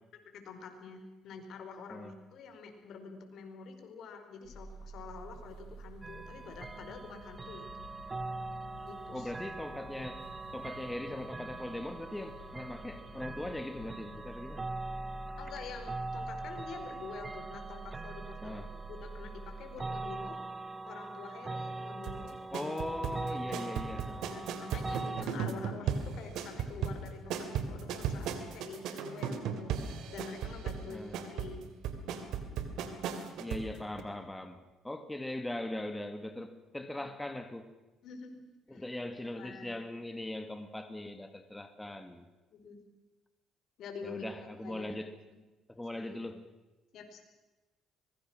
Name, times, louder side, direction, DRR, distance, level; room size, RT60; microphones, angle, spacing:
voice 1, 0.0-7.7 8.8-9.3 15.4-20.4 20.9-22.4 23.3-23.7 24.2-29.7 30.1-31.6 36.9-37.1 38.0-38.8 39.3-39.7 42.5-42.8 43.8-44.9 45.3-45.4 45.9-46.2 46.9-47.2, left 5 dB, 65° left, 4.8 m, -47 dB
sound 1, 4.4-20.2, right 1 dB, 80° left, 6.9 m, -49 dB
sound 2, 6.0-25.2, right 2 dB, 25° right, 1.1 m, -42 dB
voice 2, 9.1-10.2 10.5-14.7 18.4-18.7 22.5-24.3 30.9-31.3 33.4-37.7 38.7-42.3 44.0-45.2 45.7-46.5, left 1 dB, 10° left, 1.7 m, -40 dB
sound 3, 22.0-33.7 34.0-34.1, right 7 dB, 75° right, 2.9 m, -36 dB
24.5 x 22.0 x 6.3 m
cardioid pair, 95°, 0 cm